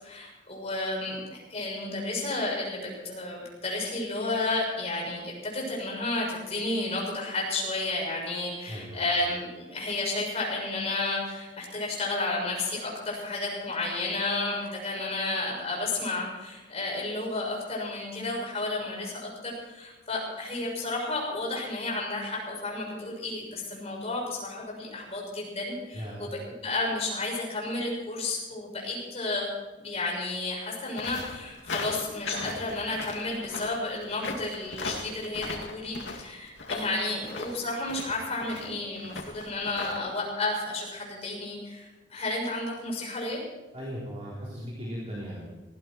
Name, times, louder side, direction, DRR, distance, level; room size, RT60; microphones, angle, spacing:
voice 1, 0.0-29.5 29.7-43.4, left 2 dB, 35° left, -2 dB, 6.7 m, -32 dB
voice 2, 8.7-9.0 25.9-26.3 43.7-45.4, equal, 35° right, -5 dB, 3.6 m, -37 dB
sound 1, 30.9-40.0, left 3 dB, 90° left, 2.5 m, -38 dB
19.0 x 16.0 x 4.6 m, 1.1 s
head